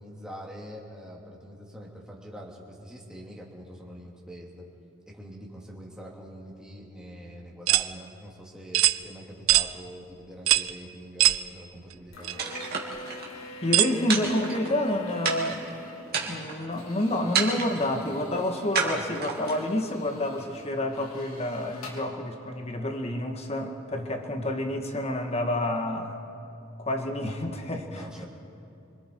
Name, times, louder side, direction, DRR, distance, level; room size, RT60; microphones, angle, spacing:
voice 1, 0.0-4.6 5.1-12.4 27.9-28.3, equal, 5° right, -3 dB, 2.8 m, -44 dB
sound 1, 7.7-7.9 8.7-9.0 9.5-9.7 10.5-10.7 11.2-11.4 12.2-12.3 13.7-13.9, right 15 dB, 70° right, 0.6 m, -21 dB
sound 2, 12.1-22.0, left 2 dB, 85° left, 4.1 m, -45 dB
sound 3, 12.4-13.3 14.1-14.9 15.2-15.7 16.1-16.7 17.3-17.9 18.7-19.7, right 5 dB, 45° right, 2.6 m, -30 dB
voice 2, 13.6-15.7 16.3-26.2 26.8-28.0, left 1 dB, 30° left, 4 dB, 1.7 m, -29 dB
26.5 x 25.0 x 4.7 m, 2.7 s
head